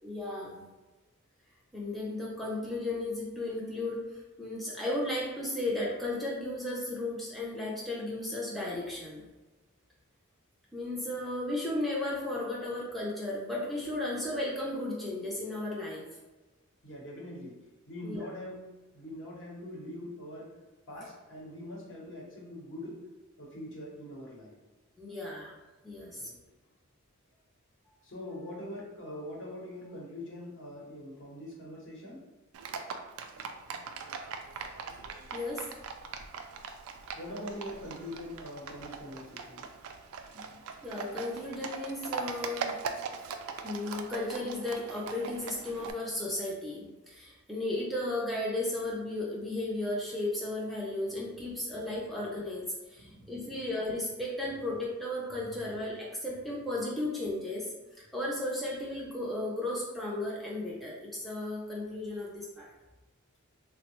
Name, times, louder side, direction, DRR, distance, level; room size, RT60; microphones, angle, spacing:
voice 1, 0.0-0.7 1.7-9.3 10.7-16.1 18.0-18.2 25.0-25.6 25.8-26.3 35.3-35.7 40.3-42.8 43.6-62.7, left 1 dB, ahead, -5 dB, 0.4 m, -35 dB
voice 2, 16.8-17.6 17.9-20.6 20.9-23.1 23.4-24.6 26.2-26.4 28.0-32.2 37.2-39.7 53.0-53.4, left 1 dB, 60° left, -3 dB, 0.9 m, -43 dB
Livestock farm animals working animals, 32.5-45.9, right 5 dB, 80° right, 0.3 m, -41 dB
3.6 x 2.0 x 3.0 m, 1.2 s
head